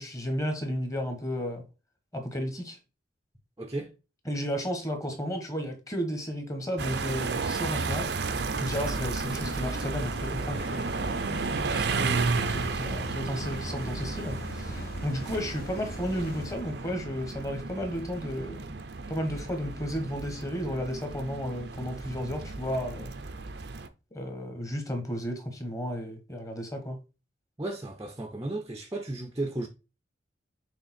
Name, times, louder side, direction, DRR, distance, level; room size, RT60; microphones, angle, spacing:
voice 1, 0.0-1.6 2.1-2.8 4.3-8.1 8.6-10.9 11.7-18.7 19.1-23.2 24.1-27.0, equal, 15° left, 1.3 m, -33 dB
voice 2, 3.6-3.9 27.6-29.7, right 2 dB, 15° right, 0.6 m, -34 dB
sound 1, 6.8-23.9, right 4 dB, 60° right, 0.6 m, -33 dB
sound 2, 8.5-16.5, left 2 dB, 50° left, 1.0 m, -41 dB
6.5 x 3.4 x 4.3 m
head